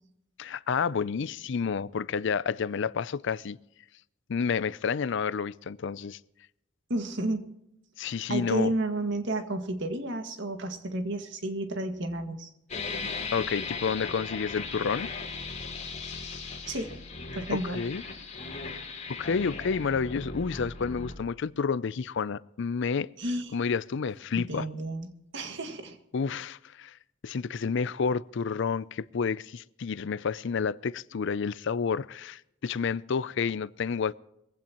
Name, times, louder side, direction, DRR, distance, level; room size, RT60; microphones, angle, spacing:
voice 1, 0.4-3.6 4.3-6.2 8.0-8.7 13.3-15.1 17.5-18.0 19.1-23.1 23.5-24.7 26.1-27.0 27.2-34.1, left 5 dB, 60° left, 0.5 m, -30 dB
voice 2, 6.9-7.5 8.3-12.5 16.7-16.9 17.3-17.8 23.2-23.5 24.4-25.1 25.3-26.0, right 1 dB, 60° right, 1.9 m, -31 dB
sound 1, 12.7-21.1, left 4 dB, 35° left, 5.0 m, -37 dB
21.5 x 15.5 x 3.0 m
head